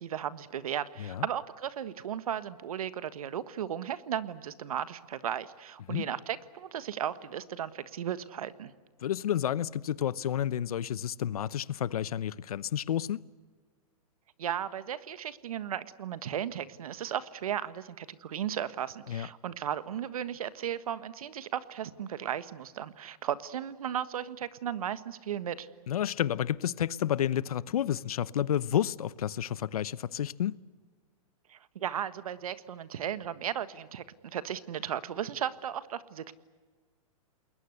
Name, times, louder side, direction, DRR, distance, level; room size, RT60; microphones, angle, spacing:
voice 1, 0.0-8.7 14.4-25.7 31.5-36.3, right 9 dB, 70° right, 1.5 m, -35 dB
voice 2, 9.0-13.2 19.1-19.3 25.9-30.5, left 10 dB, 75° left, 0.9 m, -30 dB
29.0 x 21.0 x 8.1 m
hypercardioid pair, 160°, 19 cm